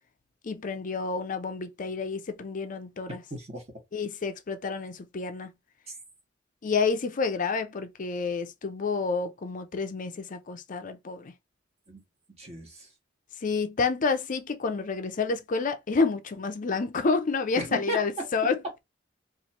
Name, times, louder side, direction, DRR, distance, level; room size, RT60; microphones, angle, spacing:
voice 1, 0.4-3.2 3.9-5.5 6.6-11.3 13.4-18.5, left 4 dB, 45° left, 0.5 m, -29 dB
voice 2, 3.3-3.7 5.9-6.0 11.9-12.0 12.4-12.9 17.6-18.5, right 2 dB, 35° right, 1.4 m, -35 dB
3.0 x 2.5 x 4.2 m
head